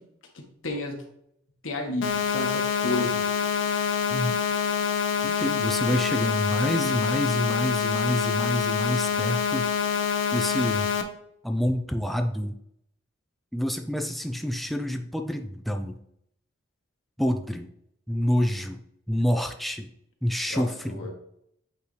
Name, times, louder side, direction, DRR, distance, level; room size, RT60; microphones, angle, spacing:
voice 1, 0.6-1.1 1.6-3.3 20.5-21.1, left 2 dB, 85° left, 1 dB, 1.4 m, -32 dB
sound 1, 2.0-11.0, left 7 dB, 70° left, 0.7 m, -26 dB
voice 2, 4.1-4.4 5.2-9.7 10.3-10.9 11.4-12.6 13.5-16.0 17.2-17.7 18.1-18.8 19.1-19.9 20.2-21.1, equal, ahead, 5 dB, 0.4 m, -27 dB
8.3 x 4.1 x 3.2 m, 0.73 s
head